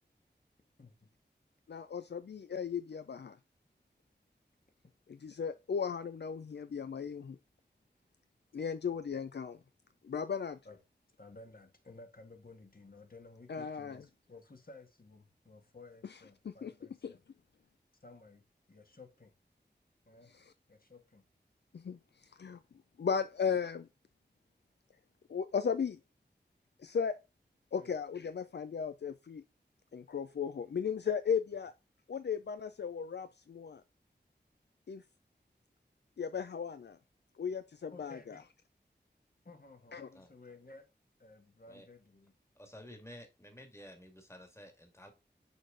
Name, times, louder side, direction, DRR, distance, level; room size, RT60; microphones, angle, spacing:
voice 1, 0.8-1.1 10.7-10.8 11.2-17.2 17.6-17.7 18.0-19.3 20.1-20.3 20.7-21.2 27.8-27.9 37.9-38.4 39.5-40.9 41.2-42.3, left 3 dB, 55° left, 1.8 m, -55 dB
voice 2, 1.7-3.4 5.2-7.4 8.5-9.6 10.0-10.6 13.5-14.0 16.6-16.7 17.0-17.1 21.7-22.0 22.4-22.6 23.0-23.9 25.3-26.0 26.8-27.2 27.7-29.4 29.9-31.7 32.1-33.8 34.9-35.0 36.2-37.0 37.4-38.3 39.9-40.1, left 6 dB, 70° left, 0.4 m, -36 dB
voice 3, 42.6-45.1, equal, 15° left, 1.9 m, -52 dB
6.4 x 4.9 x 3.8 m
wide cardioid pair, 50°, 18 cm